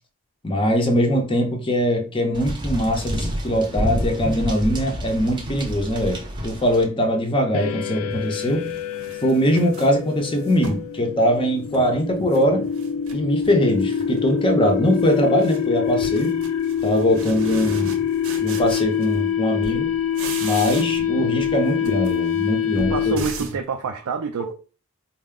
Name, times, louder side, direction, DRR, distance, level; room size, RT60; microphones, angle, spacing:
voice 1, 0.4-8.7 9.2-12.7 13.1-16.4 16.8-18.0 18.4-20.0 20.4-23.2 24.4-24.5, equal, 25° left, 0.6 m, -22 dB
sound 1, 2.3-6.8, equal, 20° right, 0.7 m, -28 dB
sound 2, 7.4-7.5 8.1-10.9 11.3-12.4 12.7-13.6 13.9-14.3 14.6-19.4 19.6-21.1 21.4-23.6, right 4 dB, 65° right, 0.8 m, -38 dB
sound 3, 7.5-23.5, left 8 dB, 70° left, 0.3 m, -25 dB
voice 2, 22.8-24.5, right 6 dB, 90° right, 0.4 m, -27 dB
4.3 x 2.0 x 3.6 m
head